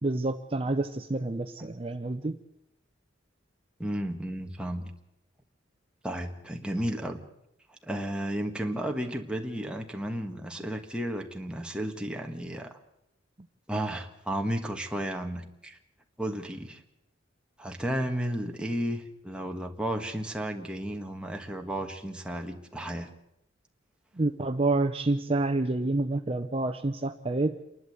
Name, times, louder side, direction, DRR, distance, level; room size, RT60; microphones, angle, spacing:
voice 1, 0.0-2.4 24.2-27.6, right 2 dB, 30° right, 6 dB, 0.7 m, -28 dB
voice 2, 3.8-4.9 6.0-7.2 7.8-12.8 13.7-15.8 16.2-16.8 17.6-23.1, right 1 dB, 5° right, 3 dB, 1.5 m, -33 dB
28.5 x 11.5 x 7.9 m, 0.85 s
head